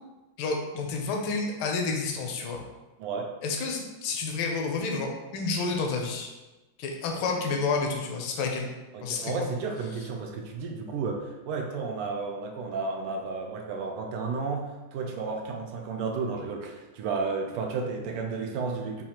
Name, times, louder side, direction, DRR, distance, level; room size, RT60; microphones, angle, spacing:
voice 1, 0.4-2.6 3.4-6.3 6.8-8.7 9.0-9.3, left 4 dB, 75° left, 1 dB, 1.4 m, -30 dB
voice 2, 3.0-3.3 8.9-19.0, right 4 dB, 90° right, 1 dB, 1.5 m, -32 dB
5.0 x 2.4 x 2.9 m, 1.1 s
omnidirectional pair, 2.4 m